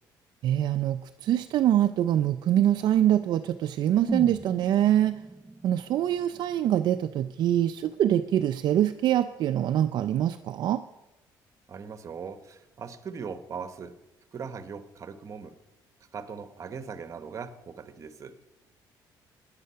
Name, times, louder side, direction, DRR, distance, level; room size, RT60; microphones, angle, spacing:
voice 1, 0.4-5.2 5.6-10.8, right 11 dB, 65° right, 8 dB, 0.5 m, -24 dB
sound 1, 4.1-8.1 8.4-8.5, right 2 dB, 5° right, 0.6 m, -39 dB
voice 2, 11.7-14.0 14.3-15.6 16.1-18.4, right 6 dB, 40° right, 11 dB, 1.1 m, -40 dB
15.0 x 10.5 x 5.7 m, 0.99 s
cardioid pair, 115°, 8 cm